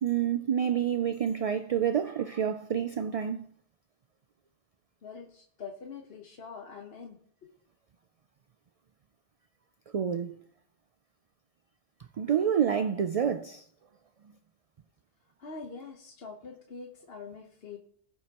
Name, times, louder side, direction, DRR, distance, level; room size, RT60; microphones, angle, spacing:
voice 1, 0.0-3.5 9.9-10.4 12.2-13.6, right 8 dB, 60° right, 0.4 m, -28 dB
voice 2, 5.0-7.5 15.4-17.8, left 5 dB, 65° left, 1.2 m, -44 dB
20.0 x 7.4 x 2.9 m
omnidirectional pair, 1.1 m